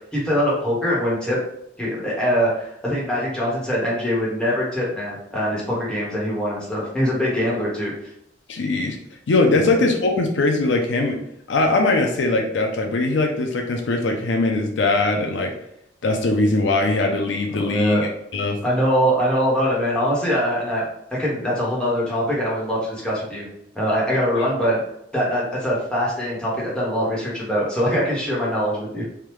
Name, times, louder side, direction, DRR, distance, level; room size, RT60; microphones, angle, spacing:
voice 1, 0.1-1.4 1.8-7.9 9.5-9.7 17.5-18.1 18.6-20.9 21.2-23.5 23.7-24.8 25.1-29.1, equal, 5° left, -6 dB, 1.1 m, -23 dB
voice 2, 8.5-9.0 9.3-11.2 11.5-15.5 16.0-18.6, left 2 dB, 75° left, 3 dB, 0.5 m, -21 dB
3.4 x 2.3 x 3.0 m, 0.76 s
head